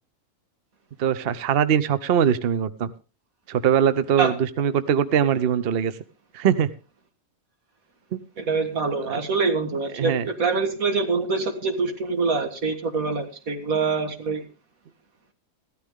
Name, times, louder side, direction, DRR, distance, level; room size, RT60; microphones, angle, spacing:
voice 1, 1.0-2.9 3.5-5.9 6.3-6.7 8.1-8.2 9.1-9.2 10.0-10.3, right 8 dB, 50° right, 13 dB, 0.9 m, -22 dB
voice 2, 8.4-14.5, right 4 dB, 90° right, 6 dB, 2.2 m, -25 dB
15.0 x 13.0 x 3.6 m, 0.32 s
omnidirectional pair, 1.4 m